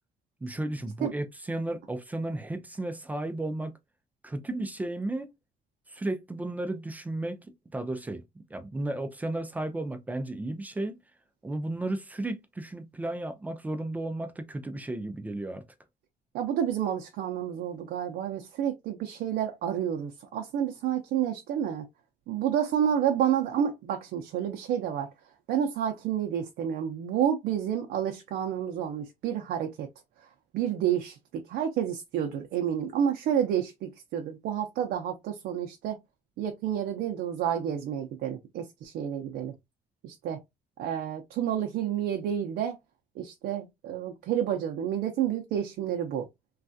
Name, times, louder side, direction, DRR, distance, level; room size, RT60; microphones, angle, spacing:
voice 1, 0.4-3.7 4.2-5.3 5.9-8.2 8.5-11.0 11.4-15.6, right 2 dB, 10° right, 0.3 m, -34 dB
voice 2, 16.3-21.9 22.3-25.1 25.5-29.9 30.2-30.3 30.5-36.0 36.4-39.5 40.0-40.4 40.8-42.8 43.2-46.3, right 9 dB, 80° right, 0.6 m, -30 dB
3.2 x 2.3 x 2.6 m
cardioid pair, 175°, 16 cm